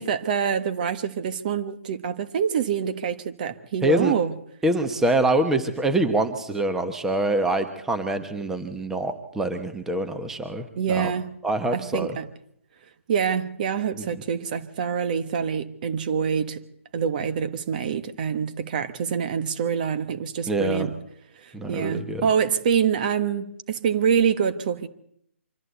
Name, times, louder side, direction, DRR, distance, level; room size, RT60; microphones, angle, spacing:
voice 1, 0.0-4.3 10.8-11.3 11.7-12.3 13.1-16.6 16.9-21.0 21.4-24.9, right 7 dB, 40° right, 1.4 m, -26 dB
voice 2, 3.8-4.1 4.6-11.1 11.4-12.2 13.9-14.1 20.5-20.9 21.5-22.3, right 1 dB, 5° right, 1.2 m, -25 dB
25.0 x 14.0 x 8.2 m
hypercardioid pair, 155°, 7 cm